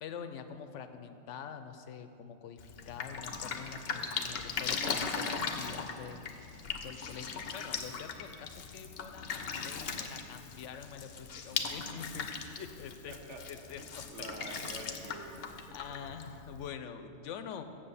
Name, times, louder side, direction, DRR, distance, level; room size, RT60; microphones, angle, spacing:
voice 1, 0.0-6.5 6.8-13.2 13.5-14.0 15.7-17.6, left 7 dB, 90° left, 9 dB, 1.0 m, -45 dB
Drip, 2.6-16.7, left 5 dB, 60° left, 0.8 m, -39 dB
voice 2, 13.1-13.4 14.1-16.0, right 2 dB, 75° right, 3 dB, 1.3 m, -47 dB
7.6 x 7.3 x 6.8 m, 2.6 s
omnidirectional pair, 1.2 m